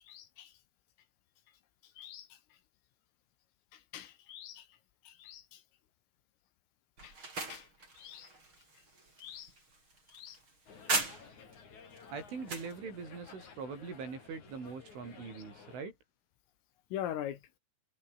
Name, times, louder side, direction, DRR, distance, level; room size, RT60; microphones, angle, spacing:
voice 1, 0.1-0.5 2.0-2.3 3.9-4.6 5.1-5.6 7.0-7.1 7.5-7.7 8.0-8.3 9.2-9.5 10.1-10.4 16.9-17.4, left 11 dB, 80° left, 4.9 m, -42 dB
sound 1, 7.0-11.5 12.0-12.7, right 3 dB, 25° right, 6.3 m, -39 dB
sound 2, 10.7-15.8, left 6 dB, 40° left, 4.8 m, -54 dB
voice 2, 12.1-15.9, right 5 dB, 70° right, 10.0 m, -42 dB
omnidirectional pair, 5.8 m